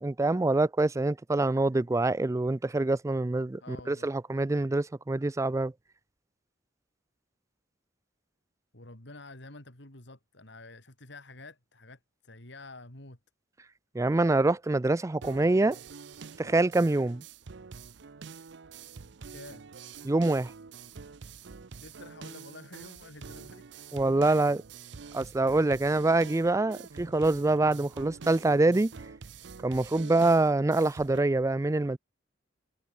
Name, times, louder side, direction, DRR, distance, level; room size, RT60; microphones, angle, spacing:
voice 1, 0.0-5.7 13.9-15.8 16.4-17.2 20.0-20.5 23.9-24.6 25.1-28.9 29.6-32.0, right 2 dB, 15° right, 0.4 m, -25 dB
voice 2, 3.6-4.1 8.7-13.2 19.3-19.6 21.8-24.5, left 2 dB, 70° left, 4.1 m, -49 dB
sound 1, 15.2-31.2, right 5 dB, 70° right, 0.7 m, -46 dB
head